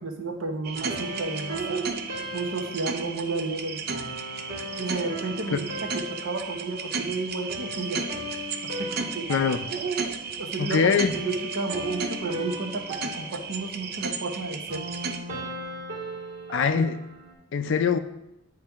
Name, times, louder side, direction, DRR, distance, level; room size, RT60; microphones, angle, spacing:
voice 1, 0.0-1.8 2.3-3.8 4.8-5.6 5.9-8.0 8.6-9.3 10.4-14.8, right 3 dB, 70° right, 4 dB, 0.9 m, -32 dB
sound 1, 0.6-15.2, right 5 dB, 50° right, 0.5 m, -34 dB
sound 2, 0.7-17.3, equal, 90° right, 2.1 m, -38 dB
voice 2, 10.6-11.1 16.5-17.0 17.5-18.0, left 6 dB, 60° left, 11 dB, 0.4 m, -23 dB
9.5 x 3.2 x 3.5 m, 0.87 s
head